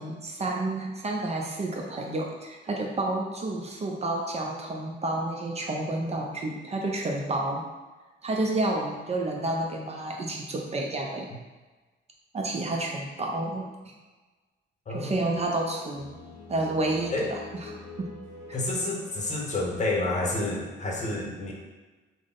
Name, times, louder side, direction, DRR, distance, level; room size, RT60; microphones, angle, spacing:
voice 1, 0.0-7.6 8.2-11.3 12.3-13.9 14.9-16.1 16.5-17.7, right 2 dB, 35° right, 0 dB, 0.5 m, -30 dB
voice 2, 14.9-15.2 17.1-17.3 18.5-21.5, left 2 dB, 35° left, -1 dB, 0.8 m, -29 dB
sound 1, 15.1-20.1, left 3 dB, 75° left, 0.6 m, -45 dB
3.4 x 2.1 x 3.8 m, 1.3 s
cardioid pair, 90°, 20 cm